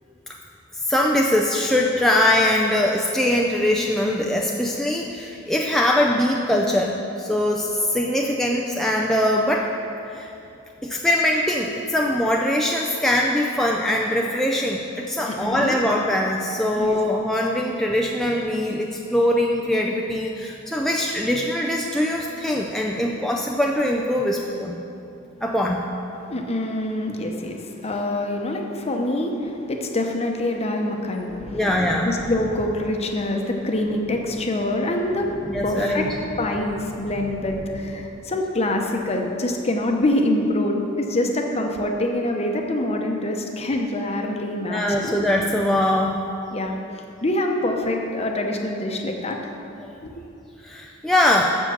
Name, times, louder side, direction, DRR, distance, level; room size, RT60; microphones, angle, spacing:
voice 1, 0.7-9.7 10.0-10.3 10.8-24.8 25.4-25.9 31.5-32.1 35.5-36.1 44.7-46.2 50.6-51.6, left 1 dB, ahead, -1 dB, 0.4 m, -22 dB
voice 2, 15.3-15.8 16.8-17.0 26.3-31.6 32.0-35.3 35.6-36.1 36.4-45.2 46.5-46.8 47.2-49.4 50.0-50.2, left 1 dB, 30° left, 2 dB, 0.9 m, -25 dB
Wind / Thunder, 31.1-39.4 39.7-39.8, equal, 30° right, 1.6 m, -40 dB
7.4 x 6.6 x 7.2 m, 2.8 s
head